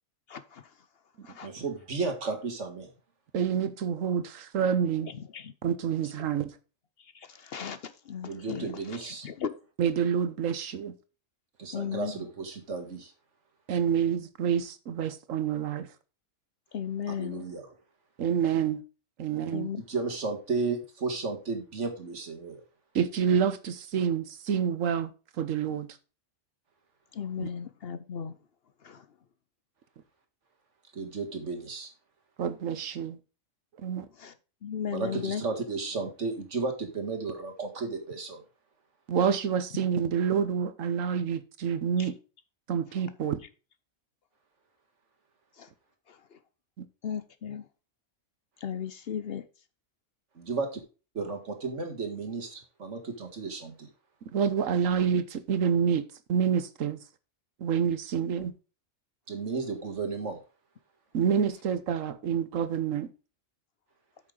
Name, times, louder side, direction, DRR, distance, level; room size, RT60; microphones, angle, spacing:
voice 1, 0.3-0.7 1.2-1.5 5.0-5.5 7.0-9.6 11.7-12.2 16.7-17.4 19.5-19.8 27.1-28.4 28.8-29.1 34.1-34.3 34.6-35.4 42.0-42.1 45.6-45.7 46.1-46.4 47.0-47.7 48.6-49.5, left 8 dB, 55° left, 0.9 m, -36 dB
voice 2, 1.4-2.9 8.3-9.3 11.6-13.1 17.2-17.6 19.9-22.6 30.9-31.9 34.9-38.4 50.4-50.8 51.1-53.9 59.3-60.4, right 4 dB, 65° right, 2.1 m, -33 dB
voice 3, 3.3-5.1 5.6-6.5 9.8-10.9 13.7-15.9 18.2-18.8 19.2-19.7 22.9-25.1 25.4-25.9 27.4-27.5 32.4-33.2 33.8-34.1 39.1-42.1 42.7-43.4 46.8-46.9 54.3-57.0 57.6-58.5 61.1-63.1, right 7 dB, 90° right, 1.3 m, -28 dB
8.7 x 6.6 x 3.8 m
omnidirectional pair, 1.3 m